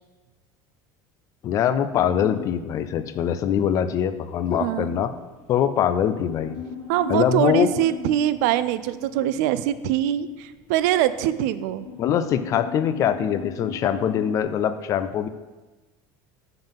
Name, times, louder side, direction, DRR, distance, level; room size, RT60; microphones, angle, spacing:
voice 1, 1.4-5.1 5.5-6.6 7.1-7.7 12.0-15.3, left 9 dB, 35° left, 12 dB, 0.3 m, -23 dB
sound 1, 1.9-14.4, left 5 dB, 50° left, 1.7 m, -40 dB
voice 2, 4.6-4.9 6.9-11.9, right 12 dB, 75° right, 14 dB, 0.4 m, -23 dB
7.1 x 3.8 x 5.2 m, 1.2 s
cardioid pair, 155°, 10 cm